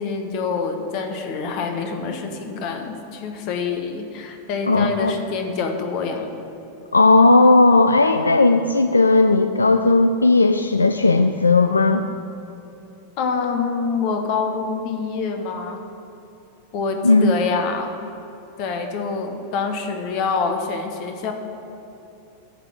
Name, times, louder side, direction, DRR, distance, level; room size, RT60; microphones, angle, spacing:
voice 1, 0.0-6.3 13.2-15.8 16.7-18.0 18.6-21.3, left 4 dB, 45° left, 4 dB, 1.1 m, -26 dB
voice 2, 4.7-5.2 6.9-12.0 17.0-17.3, left 3 dB, 80° left, 7 dB, 0.3 m, -15 dB
11.0 x 3.9 x 7.4 m, 3.0 s
figure-of-eight pair, 90°, 0 cm